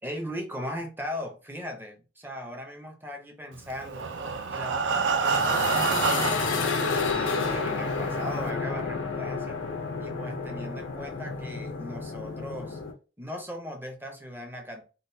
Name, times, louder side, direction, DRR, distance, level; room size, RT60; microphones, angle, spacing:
voice 1, 0.0-4.1 4.5-9.6 10.0-12.8 13.2-14.8, left 1 dB, 10° right, 0.6 m, -38 dB
Breathing, 3.7-6.7 7.4-7.5 7.9-8.0 8.4-8.5, right 5 dB, 65° right, 0.4 m, -27 dB
sound 1, 5.1-12.9, left 4 dB, 80° left, 0.6 m, -30 dB
3.7 x 2.2 x 2.7 m
head